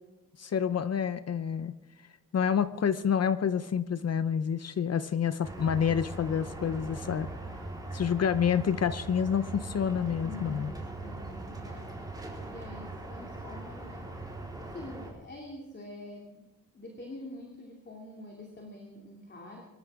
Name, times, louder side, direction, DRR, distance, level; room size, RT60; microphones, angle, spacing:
voice 1, 0.4-1.7 2.3-7.3 7.9-10.7, left 7 dB, 45° left, 13 dB, 0.7 m, -28 dB
sound 1, 5.4-15.1, right 2 dB, 10° right, 3.9 m, -40 dB
voice 2, 10.2-12.0 12.5-14.2 14.6-16.5 16.7-19.6, left 2 dB, 30° left, 0 dB, 2.7 m, -46 dB
24.5 x 14.5 x 3.6 m, 1.1 s
wide cardioid pair, 160°, 34 cm